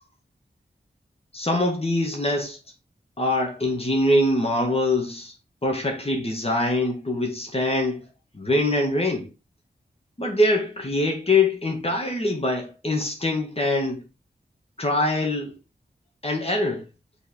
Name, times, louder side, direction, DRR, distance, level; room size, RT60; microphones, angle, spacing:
voice 1, 1.3-2.6 3.2-5.3 5.6-8.0 8.3-9.3 10.2-14.0 14.8-15.5 16.2-16.8, left 1 dB, 35° left, 2.0 m, -23 dB
6.1 x 4.1 x 5.1 m
cardioid pair, 55°, 18 cm